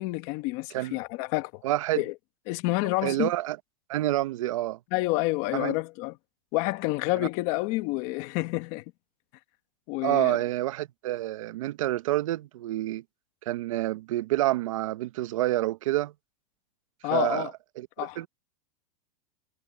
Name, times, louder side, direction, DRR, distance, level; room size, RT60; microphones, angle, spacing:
voice 1, 0.0-1.6 2.0-2.1 2.5-3.3 4.9-6.2 6.5-8.8 9.9-10.4 17.0-17.5 18.0-18.2, left 21 dB, 40° left, 1.2 m, -29 dB
voice 2, 1.6-2.0 3.0-3.6 3.9-4.8 5.5-5.7 7.2-7.3 10.0-13.0 13.5-16.1 17.1-17.5 17.8-18.3, right 15 dB, 65° right, 0.8 m, -28 dB
supercardioid pair, 165°, 18 cm